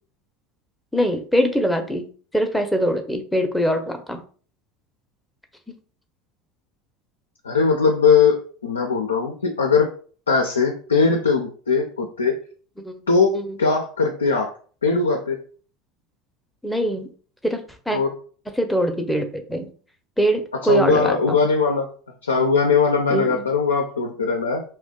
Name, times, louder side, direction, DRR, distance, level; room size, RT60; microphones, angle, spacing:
voice 1, 0.9-2.1 2.3-4.2 12.8-13.0 13.3-13.6 16.6-17.1 17.4-17.6 17.9-18.0 18.6-19.7 20.2-21.4 23.1-23.4, equal, 5° left, 5 dB, 0.6 m, -22 dB
voice 2, 7.4-9.9 10.3-12.4 13.1-14.5 14.8-15.4 17.9-18.1 20.6-21.9 22.2-24.6, left 5 dB, 90° left, 2 dB, 0.4 m, -20 dB
2.4 x 2.1 x 3.6 m, 0.42 s
hypercardioid pair, 80°, 0 cm